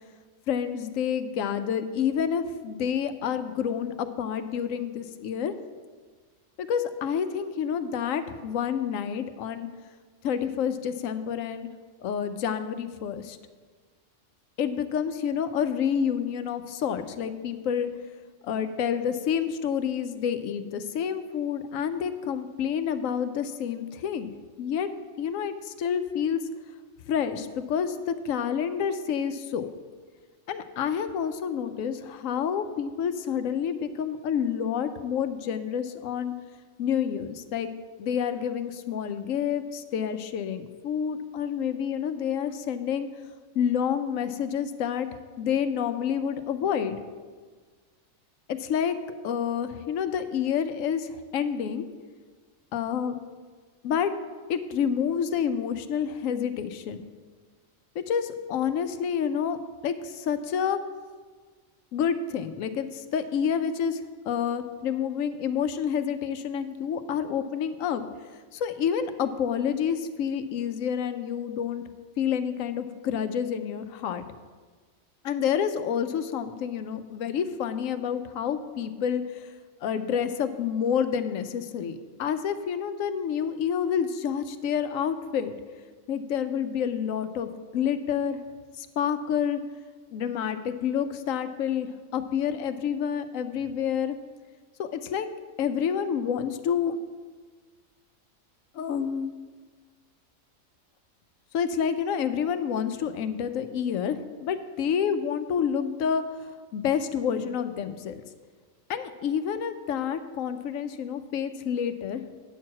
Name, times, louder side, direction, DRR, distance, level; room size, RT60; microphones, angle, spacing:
voice 1, 0.5-5.5 6.6-9.7 10.2-11.7 12.0-13.4 14.6-17.9 18.4-24.3 24.6-24.9 25.2-26.4 27.1-29.7 30.5-36.3 36.8-37.7 38.0-43.1 43.5-45.1 45.4-47.0 48.5-49.0 49.2-51.9 52.7-53.2 53.8-54.1 54.5-57.0 57.9-59.6 59.8-60.8 61.9-64.0 64.2-68.0 68.5-71.8 72.2-74.2 75.2-79.5 79.8-85.6 86.1-88.4 88.8-89.6 90.1-94.2 94.8-95.3 95.6-97.0 98.7-99.3 101.5-108.2 108.9-112.2, left 8 dB, 80° left, 10 dB, 1.0 m, -28 dB
9.1 x 4.6 x 7.3 m, 1.4 s
omnidirectional pair, 1.4 m